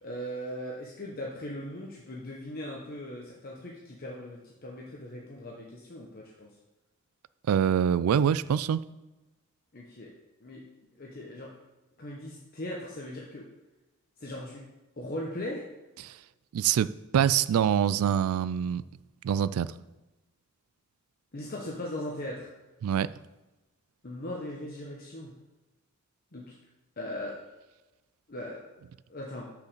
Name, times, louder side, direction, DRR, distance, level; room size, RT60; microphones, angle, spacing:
voice 1, 0.0-6.5 9.7-10.1 10.4-10.6 11.0-11.5 12.0-13.5 14.2-14.6 15.0-15.6 21.3-22.5 24.0-25.3 26.3-26.5 27.0-27.4 28.3-28.6 29.1-29.5, left 1 dB, 45° left, -2 dB, 1.0 m, -39 dB
voice 2, 7.5-8.8 16.0-16.2 16.5-18.8 19.2-19.7 22.8-23.1, right 8 dB, 80° right, 18 dB, 0.3 m, -25 dB
6.7 x 5.0 x 6.6 m, 1.1 s
head